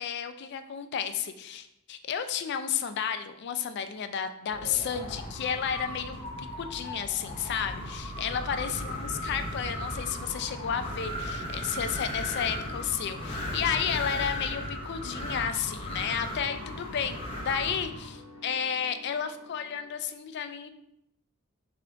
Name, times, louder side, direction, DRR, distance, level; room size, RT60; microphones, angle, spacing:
voice 1, 0.0-20.7, left 8 dB, 50° left, 9 dB, 0.3 m, -32 dB
Wind, 4.5-18.1, left 1 dB, 25° left, 0.8 m, -36 dB
sound 1, 5.3-13.5, right 1 dB, 55° right, 0.6 m, -49 dB
sound 2, 11.9-19.9, left 3 dB, 70° left, 1.0 m, -49 dB
3.6 x 3.3 x 3.8 m, 0.79 s
head